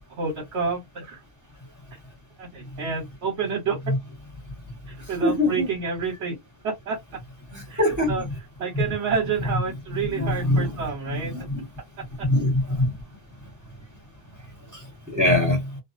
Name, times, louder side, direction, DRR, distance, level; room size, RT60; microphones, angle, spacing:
voice 1, 0.2-1.2 1.9-2.0 2.4-3.8 4.9-6.4 6.9-7.0 7.7-8.2 8.6-11.5 12.2-12.3, right 5 dB, 70° right, 1.2 m, -29 dB
voice 2, 5.2-5.7 7.5-8.3 8.7-8.9 10.1-11.6 12.2-12.9 14.7-15.8, left 1 dB, 15° right, 1.2 m, -24 dB
2.4 x 2.4 x 2.5 m
omnidirectional pair, 1.2 m